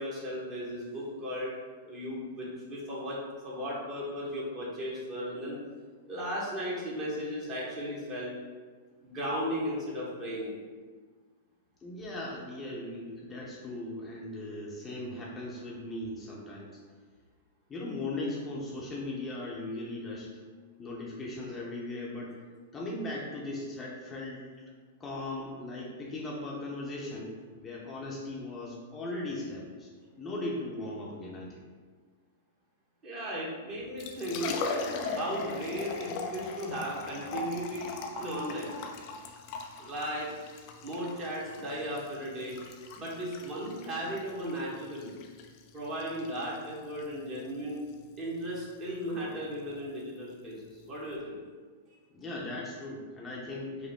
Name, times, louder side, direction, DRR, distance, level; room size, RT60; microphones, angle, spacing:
voice 1, 0.0-1.5 1.8-3.2 3.4-5.6 6.1-8.3 9.0-10.5 33.0-34.5 35.1-37.9 38.2-38.7 39.8-40.3 40.8-42.6 42.9-45.1 45.7-47.8 48.2-50.6 50.9-51.4, equal, 30° right, -5 dB, 1.5 m, -36 dB
voice 2, 11.8-16.8 17.7-20.3 20.8-22.4 22.7-24.5 25.0-29.9 30.2-31.6 52.1-53.9, left 2 dB, 20° left, -4 dB, 0.8 m, -38 dB
Liquid, 33.8-51.2, left 4 dB, 45° left, 0.5 m, -40 dB
5.1 x 2.1 x 3.6 m, 1.5 s
hypercardioid pair, 105°, 0 cm